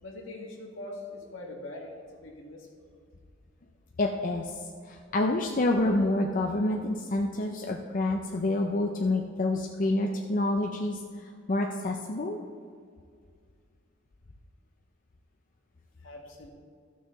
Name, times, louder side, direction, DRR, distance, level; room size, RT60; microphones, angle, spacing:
voice 1, 0.0-2.7 16.0-16.5, left 2 dB, 75° left, -1 dB, 2.0 m, -42 dB
voice 2, 4.0-4.5 4.9-12.4, left 2 dB, 45° left, 2 dB, 0.6 m, -28 dB
14.5 x 6.2 x 4.1 m, 2.1 s
head